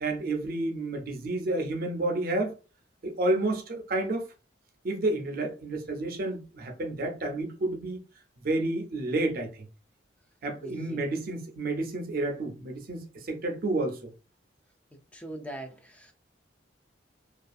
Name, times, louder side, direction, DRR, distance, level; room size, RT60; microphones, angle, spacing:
voice 1, 0.0-2.5 3.0-4.2 4.8-8.0 8.4-9.6 10.4-14.1, right 2 dB, 50° right, 0.5 m, -30 dB
voice 2, 10.6-11.1 15.1-16.1, right 1 dB, 5° left, 0.4 m, -41 dB
2.5 x 2.4 x 2.3 m
head